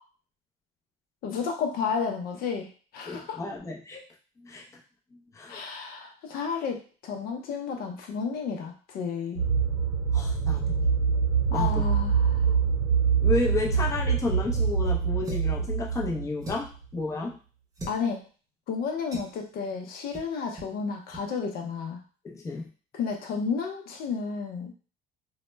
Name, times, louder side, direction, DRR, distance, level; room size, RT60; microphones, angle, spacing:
voice 1, 1.2-3.4 5.5-9.4 11.5-12.5 17.9-18.2 18.7-22.0 22.9-24.7, left 5 dB, 60° left, 3 dB, 0.5 m, -32 dB
voice 2, 3.1-4.0 4.4-4.6 5.3-5.6 10.1-10.9 11.5-11.8 12.5-12.6 13.2-17.4 22.2-22.7, left 3 dB, 20° left, -2 dB, 0.5 m, -32 dB
sound 1, 9.4-16.7, right 6 dB, 70° right, 0.6 m, -25 dB
sound 2, 15.2-15.6 16.4-16.8 17.7-18.0 19.1-19.4 20.1-20.3 20.6-20.7 21.1-21.3, right 1 dB, 20° right, 0.7 m, -39 dB
2.0 x 2.0 x 3.2 m, 0.38 s
cardioid pair, 115°, 17 cm